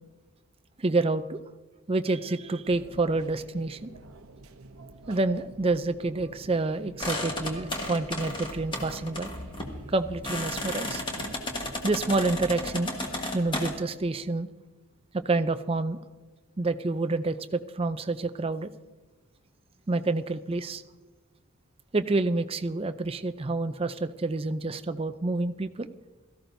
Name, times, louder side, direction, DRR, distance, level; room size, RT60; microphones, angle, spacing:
voice 1, 0.8-1.4 1.9-3.9 5.1-9.3 9.9-11.0 11.8-13.0 13.3-14.5 15.1-16.0 16.6-18.7 19.9-20.8 21.9-25.9, right 3 dB, 25° right, 10 dB, 0.4 m, -28 dB
sound 1, 2.6-12.7, right 2 dB, 70° right, 0.9 m, -48 dB
sound 2, 7.0-13.7, left 1 dB, 20° left, 1.4 m, -34 dB
17.5 x 14.0 x 2.7 m, 1.3 s
head